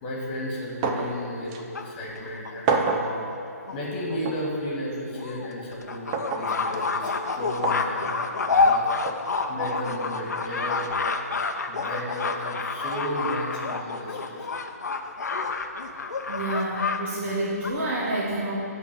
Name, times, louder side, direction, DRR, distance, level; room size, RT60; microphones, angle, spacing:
voice 1, 0.0-3.2 3.7-8.2 8.5-8.9 9.5-14.6, equal, 25° left, -3 dB, 1.8 m, -34 dB
sound 1, 0.8-1.2 1.5-1.6 2.7-3.1 4.2-4.4 6.1-6.5 7.6-7.8 9.1-9.2, right 4 dB, 20° right, 0.4 m, -26 dB
sound 2, 0.9-2.5 3.3-3.4 3.7-3.8 4.1-4.2 4.5-4.6 5.1-17.0 17.3-17.7, left 4 dB, 80° left, 0.6 m, -28 dB
voice 2, 16.3-18.6, right 1 dB, 45° right, -7 dB, 1.5 m, -28 dB
10.0 x 3.8 x 6.7 m, 2.9 s
hypercardioid pair, 160°, 9 cm